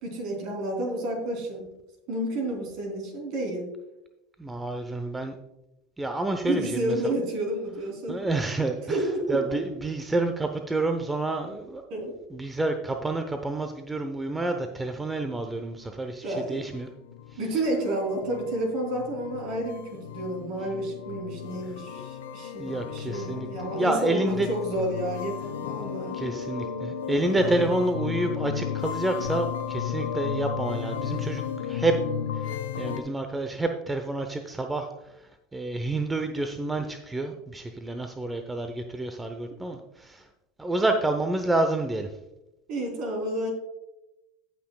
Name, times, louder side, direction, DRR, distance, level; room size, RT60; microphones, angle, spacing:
voice 1, 0.0-1.6 2.1-3.7 6.4-8.2 8.9-9.6 11.9-12.1 16.2-16.7 17.4-26.2 27.3-27.8 42.7-43.5, right 1 dB, 60° right, 0 dB, 3.3 m, -30 dB
voice 2, 4.4-5.3 6.0-7.1 8.1-9.0 9.3-16.9 22.6-24.5 26.1-31.9 32.4-34.9 35.5-40.2 40.6-42.1, right 2 dB, 15° right, 6 dB, 0.7 m, -29 dB
sound 1, 16.1-33.0, left 9 dB, 85° left, 0.8 m, -34 dB
17.0 x 5.9 x 2.3 m, 0.94 s
hypercardioid pair, 90°, 0 cm